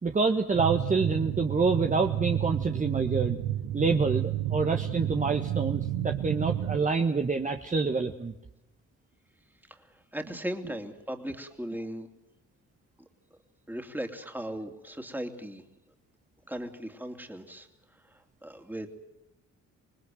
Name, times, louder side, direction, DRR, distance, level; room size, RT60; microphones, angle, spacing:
voice 1, 0.0-3.4 3.7-8.3, right 4 dB, 25° right, 5 dB, 1.5 m, -27 dB
sound 1, 0.5-6.8, right 12 dB, 90° right, 1.4 m, -31 dB
voice 2, 9.6-12.1 13.7-15.9 16.5-19.0, equal, 5° right, 5 dB, 3.0 m, -38 dB
26.5 x 19.5 x 7.8 m, 0.89 s
cardioid pair, 90°, 30 cm